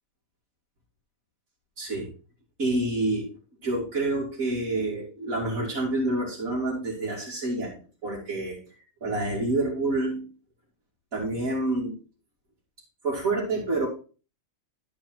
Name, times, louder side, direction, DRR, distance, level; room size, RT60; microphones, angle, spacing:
voice 1, 1.8-2.1 2.6-3.3 3.6-7.7 8.0-8.6 9.0-10.3 11.1-12.0 13.0-13.9, right 2 dB, 80° right, -7 dB, 2.9 m, -28 dB
12.0 x 4.8 x 4.6 m, 0.36 s
omnidirectional pair, 1.4 m